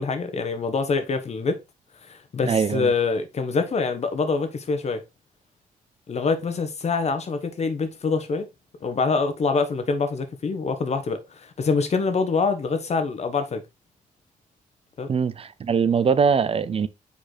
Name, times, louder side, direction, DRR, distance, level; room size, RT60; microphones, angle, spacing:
voice 1, 0.0-1.6 2.1-5.0 6.1-8.5 8.8-13.6 15.0-15.1, left 4 dB, 50° left, 1.3 m, -25 dB
voice 2, 2.4-2.9 15.1-16.9, right 6 dB, 40° right, 0.6 m, -22 dB
5.3 x 4.3 x 4.2 m
cardioid pair, 75°, 14 cm